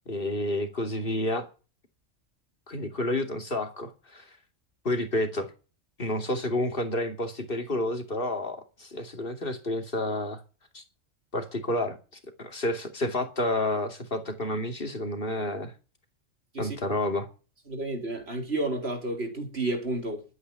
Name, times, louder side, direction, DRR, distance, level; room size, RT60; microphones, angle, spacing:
voice 1, 0.1-1.5 2.7-4.3 4.8-5.5 6.0-10.4 10.7-10.8 11.3-12.0 12.4-15.7 16.6-17.3, left 1 dB, 45° left, 2.8 m, -30 dB
voice 2, 17.7-20.2, right 2 dB, 55° right, 4.0 m, -31 dB
12.0 x 9.5 x 9.3 m
omnidirectional pair, 1.3 m